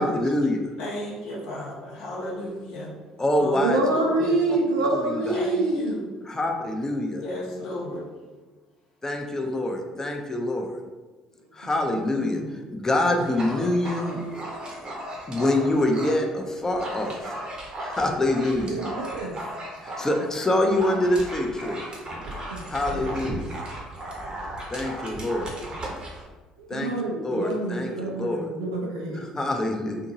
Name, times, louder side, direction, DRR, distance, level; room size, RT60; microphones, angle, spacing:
voice 1, 0.0-0.6 3.2-3.8 4.9-5.3 6.3-7.2 9.0-10.7 11.5-12.4 12.7-14.2 15.3-17.2 17.8-18.8 19.8-21.8 22.7-23.5 24.7-25.5 26.7-26.9 27.2-28.5 29.4-30.0, left 1 dB, 20° left, 2 dB, 0.5 m, -25 dB
voice 2, 0.8-2.9 3.3-4.4 5.3-6.1 7.2-8.0, equal, 70° left, -6 dB, 1.0 m, -33 dB
voice 3, 3.6-6.0 11.9-12.4 18.6-19.3 22.2-22.6 22.9-23.1 25.2-25.4 26.6-29.2, right 2 dB, 80° right, -1 dB, 0.5 m, -27 dB
Dog, 13.2-16.2 16.5-26.2, right 1 dB, 35° right, 0.7 m, -36 dB
2.6 x 2.6 x 2.6 m, 1.2 s
hypercardioid pair, 55°, 3 cm